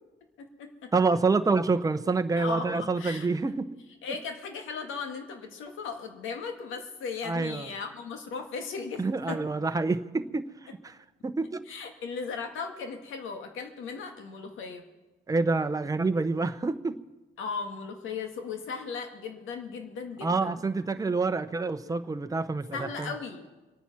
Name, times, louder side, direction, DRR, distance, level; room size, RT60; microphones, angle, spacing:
voice 1, 0.4-0.9 2.4-3.3 4.0-9.4 11.7-14.8 17.4-20.6 22.7-23.5, left 5 dB, 80° left, 5 dB, 1.9 m, -37 dB
voice 2, 0.9-3.8 7.2-7.7 9.0-10.5 10.8-11.0 11.2-11.6 15.3-17.0 20.2-23.1, right 3 dB, 15° right, 9 dB, 0.8 m, -27 dB
23.5 x 9.2 x 6.0 m, 1.1 s
cardioid pair, 90°, 20 cm